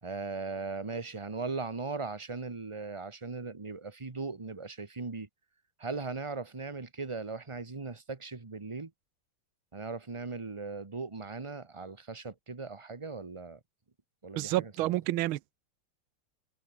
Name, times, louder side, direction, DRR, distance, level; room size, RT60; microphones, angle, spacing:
voice 1, 0.0-5.3 5.8-8.9 9.7-13.6 14.2-14.9, right 4 dB, 20° right, 0.9 m, -38 dB
voice 2, 14.4-15.6, right 15 dB, 80° right, 1.5 m, -30 dB
omnidirectional pair, 2.3 m